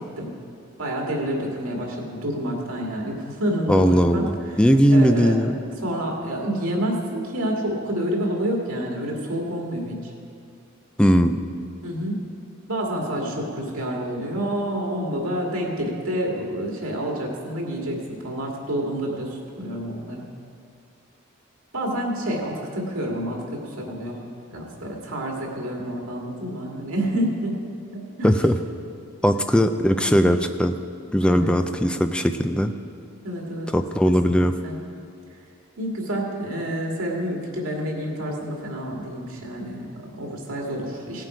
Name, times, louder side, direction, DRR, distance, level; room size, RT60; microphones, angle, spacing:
voice 1, 0.8-4.6 4.9-5.4 5.8-10.1 11.8-12.2 12.7-20.3 21.7-24.2 24.5-27.6 27.9-28.3 31.2-31.6 33.2-33.8 34.0-34.1 34.6-34.8 35.8-41.3, right 1 dB, 85° right, -1 dB, 2.1 m, -28 dB
voice 2, 3.7-5.6 11.0-11.4 28.2-28.6 29.2-30.8 31.1-32.7 33.7-34.5, equal, 5° left, 8 dB, 0.4 m, -19 dB
17.0 x 7.5 x 5.0 m, 2.4 s
head